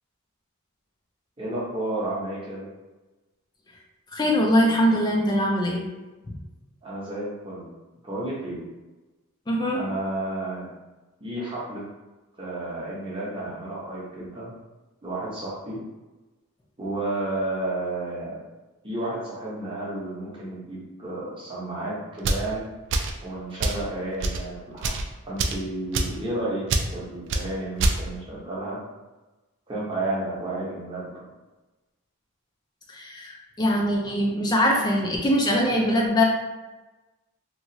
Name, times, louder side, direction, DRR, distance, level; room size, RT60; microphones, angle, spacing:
voice 1, 1.4-2.7 6.8-7.7 8.0-8.7 9.7-10.7 11.2-11.8 12.4-14.5 15.0-15.8 16.8-18.4 18.8-22.7 23.2-24.9 25.2-26.7 26.9-28.8 29.7-31.3, right 2 dB, 25° right, -6 dB, 0.8 m, -31 dB
voice 2, 4.1-5.9 6.3-6.4 9.5-9.8 32.9-36.2, equal, 20° left, -1 dB, 0.4 m, -22 dB
sound 1, 22.2-22.5 22.9-23.2 23.6-23.8 24.2-24.4 24.8-25.0 25.4-25.6 25.9-26.2 26.7-26.9 27.3-27.4 27.8-28.0, right 2 dB, 55° right, 0.3 m, -24 dB
2.9 x 2.3 x 2.7 m, 1.1 s
head